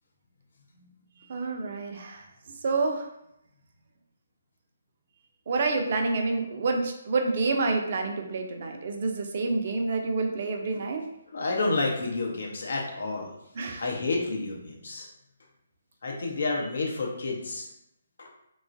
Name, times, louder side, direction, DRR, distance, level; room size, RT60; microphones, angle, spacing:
voice 1, 1.3-2.2 2.6-3.1 5.5-11.0 13.6-13.8, right 3 dB, 50° right, 4 dB, 0.4 m, -28 dB
voice 2, 11.3-13.3 13.8-15.1 16.0-17.7 18.2-18.3, left 3 dB, 60° left, -1 dB, 0.7 m, -30 dB
3.0 x 2.3 x 2.5 m, 0.80 s
figure-of-eight pair, 140°, 0 cm